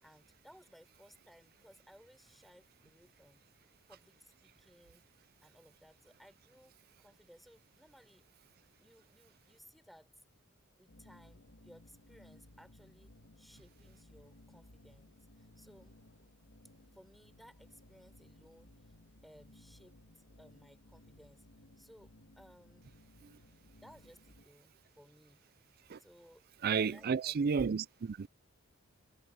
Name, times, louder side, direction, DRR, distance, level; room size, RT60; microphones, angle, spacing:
voice 1, 0.0-3.4 3.9-5.1 5.4-8.3 8.8-10.1 10.8-13.1 13.4-16.0 16.9-18.9 19.2-21.5 21.8-22.9 23.7-25.4 26.0-27.4, equal, ahead, 5.2 m, -61 dB
sound 1, 10.9-24.4, left 1 dB, 75° left, 1.8 m, -60 dB
voice 2, 26.6-28.3, right 6 dB, 45° right, 0.4 m, -32 dB
head